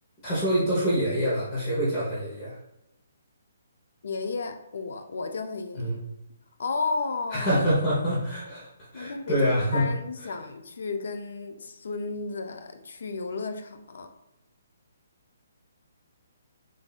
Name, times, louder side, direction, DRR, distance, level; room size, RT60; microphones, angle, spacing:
voice 1, 0.2-2.6 5.8-6.0 7.3-9.9 10.2-10.3, equal, 15° left, -9 dB, 1.1 m, -26 dB
voice 2, 4.0-5.9 6.6-7.5 8.9-14.1, left 4 dB, 65° left, 7 dB, 0.6 m, -33 dB
7.1 x 2.7 x 2.4 m, 0.88 s
hypercardioid pair, 170°, 0 cm